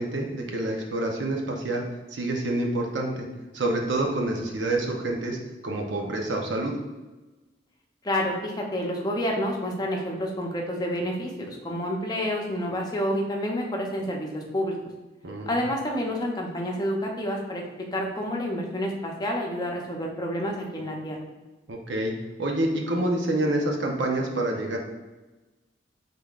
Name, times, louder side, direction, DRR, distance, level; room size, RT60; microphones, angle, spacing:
voice 1, 0.0-1.8 2.1-3.3 3.5-5.4 5.6-6.7 15.2-15.6 21.7-24.8, right 1 dB, 80° right, 1 dB, 0.8 m, -27 dB
voice 2, 8.0-14.8 15.5-17.6 17.9-21.2, equal, 20° left, 0 dB, 0.6 m, -29 dB
5.5 x 3.8 x 2.4 m, 1.2 s
head